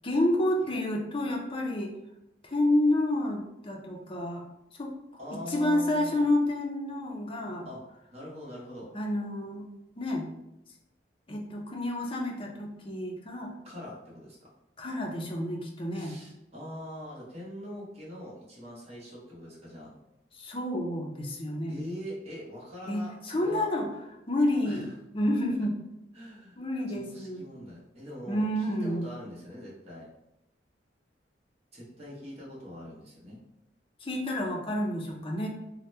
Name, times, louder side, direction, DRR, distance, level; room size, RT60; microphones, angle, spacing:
voice 1, 0.0-1.9 2.4-4.4 4.8-4.9 5.3-7.7 8.9-9.7 10.0-10.3 11.3-13.5 14.8-16.2 20.3-21.8 22.9-23.9 24.3-24.9 25.1-25.8 26.6-27.4 28.3-29.1 34.0-35.5, left 1 dB, 30° left, 1 dB, 0.5 m, -29 dB
voice 2, 5.2-6.3 7.6-7.8 8.1-8.9 13.6-14.4 15.9-19.9 21.7-23.7 24.6-24.9 26.1-26.6 26.9-30.1 31.7-33.4, left 1 dB, 35° right, -6 dB, 1.0 m, -42 dB
3.0 x 2.1 x 3.2 m, 0.87 s
head